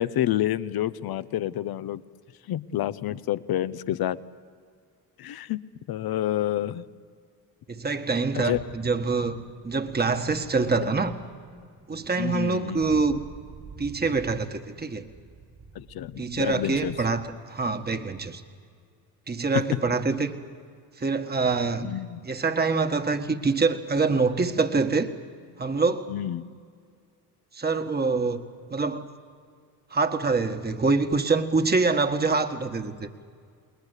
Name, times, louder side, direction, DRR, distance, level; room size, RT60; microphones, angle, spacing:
voice 1, 0.0-2.0 2.5-4.2 5.2-5.6 5.9-6.8 8.3-8.6 10.8-10.9 12.2-12.8 15.7-17.0 21.8-22.2 26.1-26.4, left 12 dB, 65° left, 15 dB, 0.9 m, -28 dB
voice 2, 7.7-11.1 11.9-13.2 13.8-15.1 16.2-18.4 19.3-20.3 21.0-21.9 22.2-25.1 25.6-26.1 27.5-28.4 28.7-29.1 29.9-33.1, right 4 dB, 25° right, 7 dB, 1.6 m, -25 dB
sound 1, 11.2-17.4, right 5 dB, 50° right, 3.0 m, -48 dB
29.5 x 20.5 x 8.3 m, 2.2 s
supercardioid pair, 75°, 40 cm